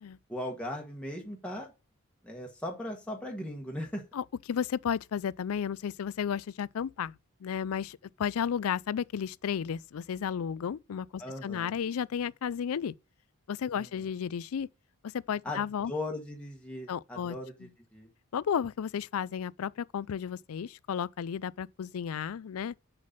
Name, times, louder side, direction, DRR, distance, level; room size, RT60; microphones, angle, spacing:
voice 1, 0.3-1.7 2.2-4.0 11.2-11.7 13.8-13.9 15.4-15.6 15.9-18.1, left 1 dB, 5° left, 1.4 m, -38 dB
voice 2, 4.1-12.9 13.5-14.7 15.1-15.9 16.9-17.7 18.3-22.7, left 7 dB, 70° left, 0.4 m, -33 dB
6.5 x 5.8 x 5.2 m
head